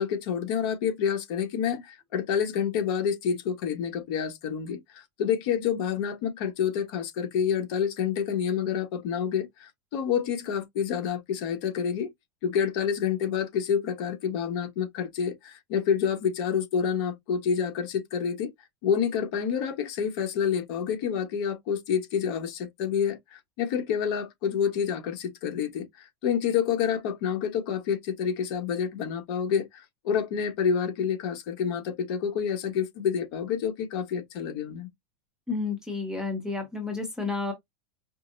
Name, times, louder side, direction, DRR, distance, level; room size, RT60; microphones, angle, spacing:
voice 1, 0.0-12.1 12.4-18.5 18.8-34.9, left 7 dB, 50° left, 1.2 m, -28 dB
voice 2, 35.5-37.5, left 4 dB, 5° right, 0.8 m, -31 dB
5.1 x 2.0 x 2.6 m
supercardioid pair, 160°, 15 cm